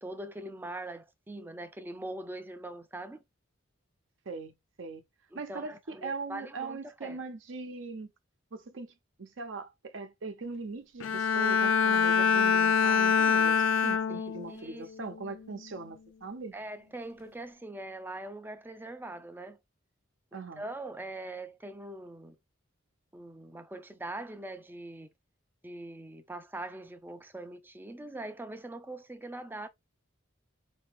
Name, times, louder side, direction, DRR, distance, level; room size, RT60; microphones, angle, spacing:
voice 1, 0.0-3.2 5.3-7.2 14.1-14.9 16.5-19.6 20.3-22.4 23.1-25.1 25.6-29.7, right 2 dB, 10° right, 0.4 m, -42 dB
voice 2, 4.3-5.0 5.3-8.1 8.5-8.9 9.2-16.5 20.3-20.7, right 3 dB, 65° right, 0.6 m, -40 dB
Bowed string instrument, 11.0-14.6 15.0-15.4, left 6 dB, 75° left, 0.4 m, -25 dB
4.8 x 2.6 x 3.4 m
head